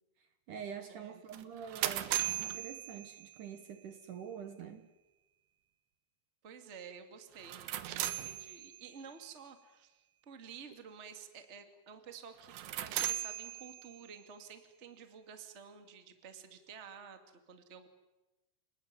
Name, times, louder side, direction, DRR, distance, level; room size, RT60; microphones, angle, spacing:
voice 1, 0.2-4.9, right 7 dB, 60° right, 9 dB, 2.5 m, -46 dB
voice 2, 0.9-1.2 6.4-17.9, right 6 dB, 25° right, 7 dB, 1.7 m, -52 dB
sound 1, 1.3-3.6 7.3-9.0 12.4-14.2, right 13 dB, 85° right, 3.4 m, -38 dB
29.0 x 19.5 x 9.7 m, 1.1 s
omnidirectional pair, 4.7 m